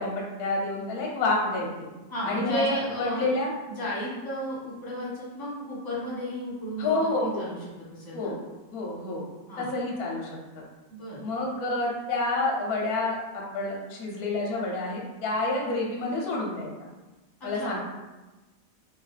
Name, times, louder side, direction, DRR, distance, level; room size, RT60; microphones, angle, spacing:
voice 1, 0.0-1.9 2.3-3.5 6.8-7.5 8.1-8.4 8.7-9.2 9.6-10.6 11.2-16.7 17.4-17.8, left 2 dB, 65° left, -2 dB, 1.0 m, -29 dB
voice 2, 2.1-3.3 3.7-7.6 7.9-8.3 9.5-9.7 10.9-11.2 17.4-17.7, equal, 15° left, -8 dB, 1.0 m, -33 dB
2.9 x 2.6 x 3.2 m, 1.1 s
omnidirectional pair, 1.9 m